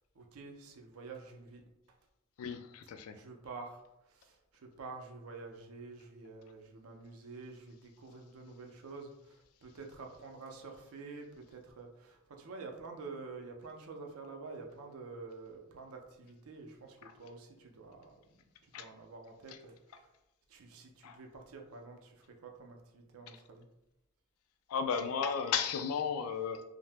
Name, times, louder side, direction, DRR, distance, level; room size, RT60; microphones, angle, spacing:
voice 1, 0.2-1.6 3.1-20.1 20.5-23.7, right 4 dB, 85° right, 3 dB, 0.5 m, -49 dB
voice 2, 2.4-3.2 17.0-17.1 18.7-18.9 19.5-19.6 21.0-21.2 23.3-23.4 24.7-26.6, left 6 dB, 85° left, 9 dB, 0.3 m, -35 dB
2.7 x 2.0 x 3.3 m, 0.88 s
head